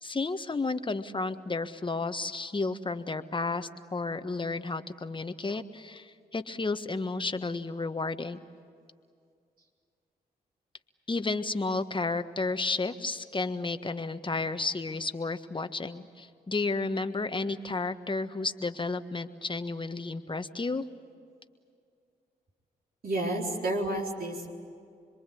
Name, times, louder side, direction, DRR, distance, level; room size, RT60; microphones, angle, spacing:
voice 1, 0.0-8.4 11.1-20.8, left 3 dB, 30° left, 9 dB, 1.5 m, -32 dB
voice 2, 23.0-24.5, right 1 dB, 60° right, -1 dB, 4.2 m, -30 dB
26.5 x 22.5 x 8.6 m, 2.3 s
supercardioid pair, 45°, 17 cm